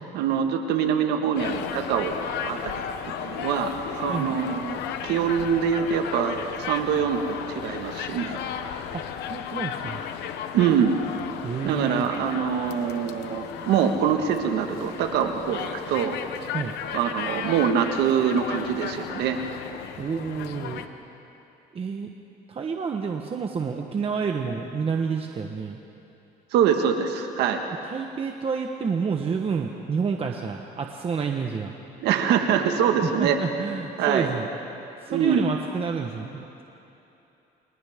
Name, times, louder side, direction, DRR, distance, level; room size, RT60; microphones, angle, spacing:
voice 1, 0.0-2.8 3.2-8.4 8.7-8.8 10.5-11.0 11.6-16.2 16.9-19.5 26.5-27.6 32.0-33.4 34.0-34.3 35.1-35.5, right 7 dB, 85° right, 5 dB, 1.6 m, -24 dB
sound 1, 1.3-20.9, left 9 dB, 80° left, 1.1 m, -35 dB
voice 2, 8.9-10.0 11.4-12.0 16.5-16.8 20.0-20.8 21.7-22.1 22.5-25.8 27.8-31.7 33.0-34.5 35.0-36.5, right 5 dB, 35° right, 3 dB, 1.2 m, -29 dB
29.5 x 26.0 x 3.7 m, 2.9 s
cardioid pair, 110°, 17 cm